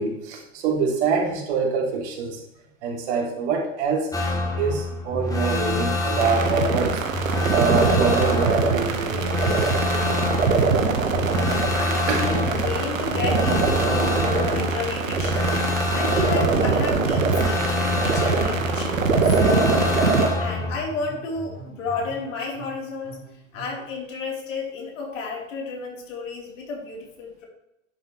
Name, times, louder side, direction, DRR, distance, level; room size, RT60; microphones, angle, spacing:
voice 1, 0.0-2.4 2.8-4.1 4.6-7.0 7.5-10.2 12.1-12.3, right 5 dB, 60° right, 1 dB, 3.1 m, -25 dB
sound 1, 4.1-20.8, left 2 dB, 10° left, 2.0 m, -26 dB
sound 2, 6.2-20.3, right 4 dB, 85° right, 1.6 m, -23 dB
voice 2, 11.7-15.5 15.9-19.9 20.4-23.2 23.5-27.5, left 3 dB, 70° left, -1 dB, 4.1 m, -31 dB
sound 3, 20.0-23.9, right 1 dB, 35° left, 3.8 m, -42 dB
11.0 x 9.1 x 3.3 m, 0.86 s
hypercardioid pair, 100°, 39 cm